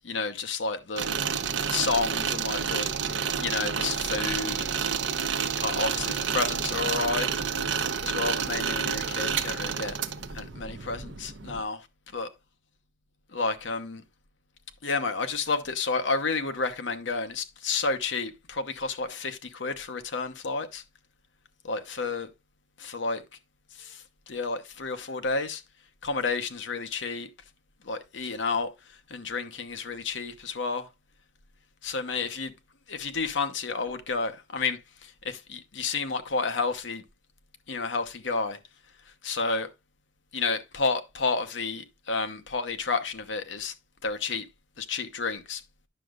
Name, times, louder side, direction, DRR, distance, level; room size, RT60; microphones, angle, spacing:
voice 1, 0.1-1.1 1.7-2.9 3.4-4.7 5.6-7.3 8.0-10.0 10.3-11.9 12.1-12.3 13.3-14.0 14.8-20.8 21.6-22.3 22.8-23.2 23.8-25.6 26.0-27.3 27.8-30.9 31.8-32.5 32.9-37.0 37.7-38.6 39.2-39.7 40.3-43.7 44.0-44.5 44.8-45.6, left 4 dB, 75° left, 0.9 m, -31 dB
sound 1, 1.0-11.6, right 6 dB, 75° right, 0.8 m, -29 dB
9.9 x 6.3 x 2.4 m
head